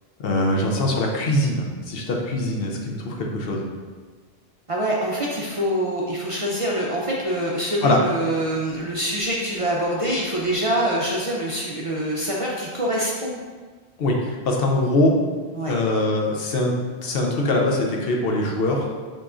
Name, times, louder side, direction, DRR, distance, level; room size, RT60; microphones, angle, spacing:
voice 1, 0.2-3.7 7.8-8.0 14.0-15.1 15.7-16.7 17.0-18.9, left 1 dB, 65° left, 0 dB, 0.8 m, -22 dB
voice 2, 4.7-13.3 15.5-15.8, right 1 dB, 40° right, -4 dB, 0.5 m, -25 dB
7.0 x 3.0 x 2.4 m, 1.5 s
omnidirectional pair, 1.1 m